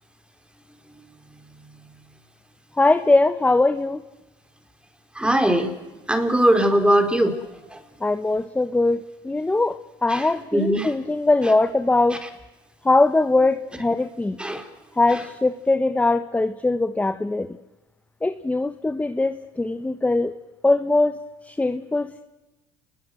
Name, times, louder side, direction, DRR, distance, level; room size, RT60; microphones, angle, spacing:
voice 1, 2.8-4.0 8.0-12.2 12.8-14.4 15.0-17.5 18.2-20.3 20.6-21.2 21.5-22.2, left 2 dB, 10° left, 9 dB, 1.2 m, -21 dB
voice 2, 5.2-5.7 6.1-7.3 7.7-7.8 10.1-10.9 14.4-14.6, right 1 dB, 5° right, 6 dB, 4.5 m, -20 dB
30.0 x 21.0 x 8.0 m, 1.1 s
supercardioid pair, 85°, 13 cm